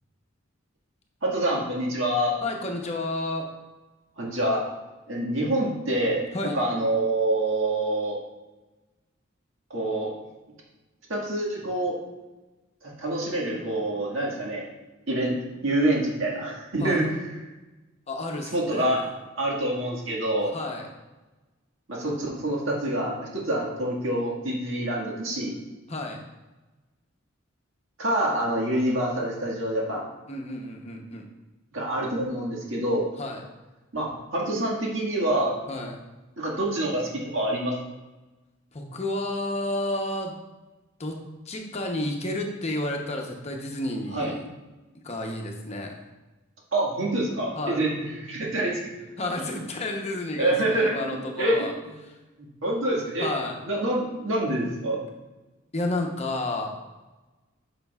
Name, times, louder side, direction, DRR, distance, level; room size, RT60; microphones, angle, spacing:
voice 1, 1.2-2.4 4.2-4.7 5.1-8.2 9.7-10.1 11.1-12.0 13.0-14.7 15.1-17.1 18.5-19.0 19.4-20.5 21.9-25.6 28.0-30.1 31.7-33.1 33.9-35.6 36.4-37.7 44.1-44.3 46.7-47.9 48.2-48.8 50.4-51.7 52.4-53.3 53.7-55.0, right 1 dB, 70° right, -3 dB, 1.8 m, -26 dB
voice 2, 2.4-3.5 6.3-6.6 16.8-17.1 18.1-19.1 20.4-20.9 25.9-26.2 30.3-31.2 33.2-33.4 35.7-36.0 38.7-40.3 41.0-41.2 41.5-44.4 45.0-46.0 47.6-47.8 49.2-51.7 52.0-52.2 53.2-53.6 55.7-56.7, left 2 dB, 30° left, 2 dB, 0.8 m, -31 dB
9.6 x 5.9 x 2.4 m, 1.1 s
head